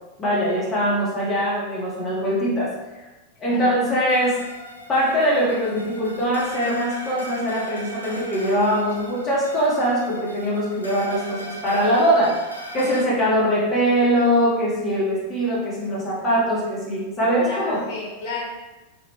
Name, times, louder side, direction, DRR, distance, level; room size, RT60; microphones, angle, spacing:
voice 1, 0.2-2.7 3.4-4.4 4.9-12.4 12.7-17.8, equal, 20° left, -7 dB, 1.4 m, -22 dB
sound 1, 4.1-13.0, equal, 85° left, 0.4 m, -38 dB
voice 2, 17.2-18.4, left 3 dB, 50° left, -4 dB, 1.2 m, -33 dB
3.1 x 2.8 x 3.1 m, 1.1 s
figure-of-eight pair, 90°, 0 cm